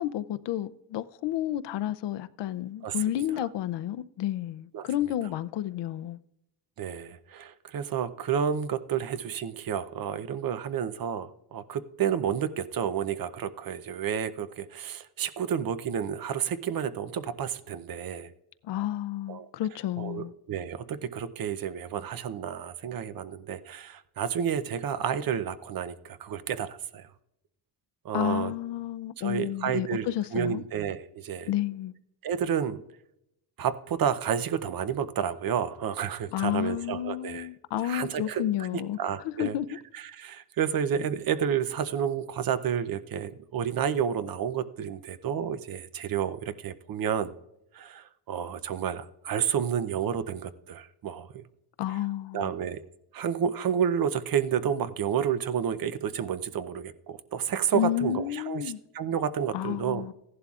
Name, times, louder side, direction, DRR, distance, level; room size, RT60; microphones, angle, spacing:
voice 1, 0.0-6.2 18.6-20.3 28.1-30.6 31.5-31.9 36.3-39.8 51.8-52.5 57.7-58.8 59.5-60.1, left 12 dB, 75° left, 0.6 m, -31 dB
voice 2, 2.8-3.5 4.7-5.3 6.8-18.3 19.3-27.1 28.0-28.5 29.2-31.5 32.2-32.8 33.6-37.5 37.8-47.3 47.7-51.4 51.9-52.1 52.3-52.8 53.1-60.1, right 8 dB, 55° right, 0.7 m, -31 dB
15.5 x 11.0 x 2.4 m
cardioid pair, 125°, 43 cm